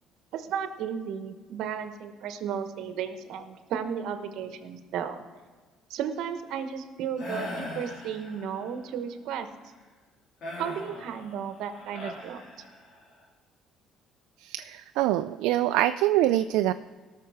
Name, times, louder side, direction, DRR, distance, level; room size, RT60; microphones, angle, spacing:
voice 1, 0.3-5.2 5.9-9.5 10.6-12.4, right 8 dB, 75° right, 8 dB, 1.1 m, -34 dB
sound 1, 7.2-8.7 10.4-13.1, left 1 dB, 55° left, 3.3 m, -40 dB
voice 2, 14.4-16.7, right 14 dB, 90° right, 10 dB, 0.3 m, -24 dB
17.5 x 6.6 x 4.8 m, 1.4 s
cardioid pair, 120°, 0 cm